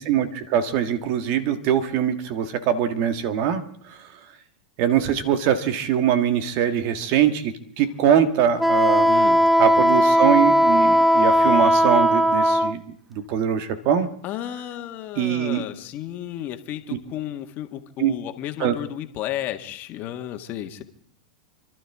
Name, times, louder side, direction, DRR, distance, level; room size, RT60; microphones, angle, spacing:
voice 1, 0.0-3.6 3.9-4.0 4.8-9.1 9.6-12.8 13.1-14.1 15.2-15.6 18.0-18.1 18.6-18.7, right 9 dB, 55° right, 10 dB, 1.6 m, -22 dB
Wind instrument woodwind instrument, 8.6-12.7, equal, 5° right, 0.6 m, -17 dB
voice 2, 9.1-9.4 14.2-20.8, left 12 dB, 45° left, 6 dB, 1.6 m, -33 dB
29.5 x 12.0 x 3.6 m, 0.65 s
hypercardioid pair, 100°, 4 cm